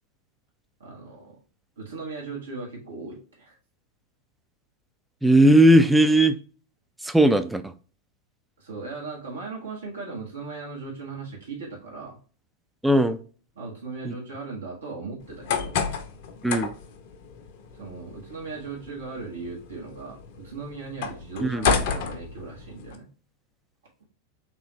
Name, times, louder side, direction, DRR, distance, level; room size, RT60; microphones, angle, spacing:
voice 1, 0.8-1.4 1.8-3.5 8.6-12.2 13.6-15.8 17.7-23.1, right 4 dB, 70° right, -3 dB, 1.4 m, -37 dB
voice 2, 5.2-6.3 7.0-7.7 12.8-13.2 14.0-14.1 16.4-16.7 21.4-21.7, right 1 dB, 5° right, 9 dB, 0.4 m, -18 dB
sound 1, 15.2-23.0, left 6 dB, 50° left, 0.6 m, -31 dB
3.8 x 3.0 x 3.1 m, 0.40 s
figure-of-eight pair, 90°, 0 cm